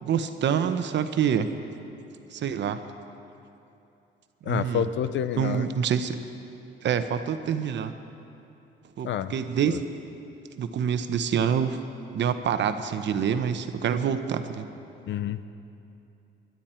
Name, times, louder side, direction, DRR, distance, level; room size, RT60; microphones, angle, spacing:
voice 1, 0.0-1.5 2.3-2.8 4.4-4.9 5.4-6.2 6.8-7.9 9.0-9.8 10.6-11.8 12.1-14.7, right 8 dB, 65° right, 9 dB, 0.9 m, -26 dB
voice 2, 4.5-5.7 9.0-9.3 9.7-9.8 15.1-15.5, left 9 dB, 70° left, 12 dB, 0.7 m, -28 dB
21.5 x 12.0 x 4.5 m, 2.7 s
cardioid pair, 90°, 20 cm